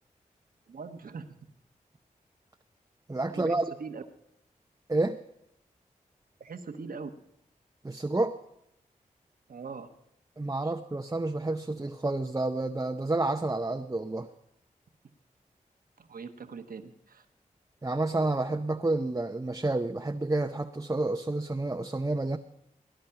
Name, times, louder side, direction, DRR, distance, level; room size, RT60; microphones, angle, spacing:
voice 1, 0.7-1.3 3.3-3.5 3.8-4.0 6.4-7.1 9.5-9.9 10.6-10.7 16.0-17.3, right 5 dB, 75° right, 7 dB, 1.2 m, -41 dB
voice 2, 3.1-3.6 4.9-5.2 7.8-8.4 10.4-14.3 17.8-22.4, right 2 dB, 20° right, 5 dB, 0.7 m, -29 dB
19.0 x 10.5 x 5.8 m, 0.80 s
cardioid pair, 45°, 15 cm